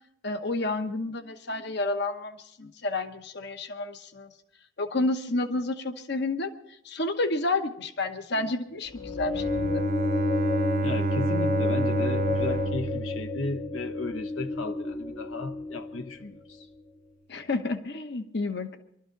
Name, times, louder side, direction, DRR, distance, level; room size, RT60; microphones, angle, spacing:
voice 1, 0.2-4.3 4.8-6.5 6.8-9.8 17.3-18.8, left 2 dB, 55° left, 8 dB, 1.0 m, -30 dB
sound 1, 8.9-16.2, left 3 dB, 25° left, 0.7 m, -30 dB
Bowed string instrument, 9.3-14.1, right 4 dB, 45° right, 0.6 m, -30 dB
voice 2, 10.8-16.7, left 2 dB, 80° left, 7 dB, 0.9 m, -35 dB
23.0 x 12.5 x 3.9 m, 0.73 s
head